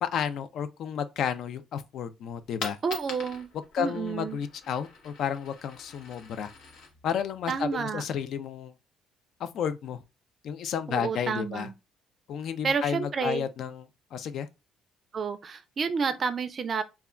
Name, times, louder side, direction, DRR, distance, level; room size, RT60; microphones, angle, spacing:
voice 1, 0.0-2.8 3.7-6.5 7.0-8.7 9.4-10.0 10.4-11.7 12.3-14.5, left 8 dB, 60° left, 0.3 m, -32 dB
Coin (dropping), 2.4-8.3, left 4 dB, 90° left, 0.8 m, -44 dB
voice 2, 2.8-3.5 3.8-4.4 7.5-8.0 10.9-11.7 12.6-13.5 15.1-16.8, right 5 dB, 35° right, 0.4 m, -30 dB
2.2 x 2.2 x 3.5 m
cardioid pair, 135°, 0 cm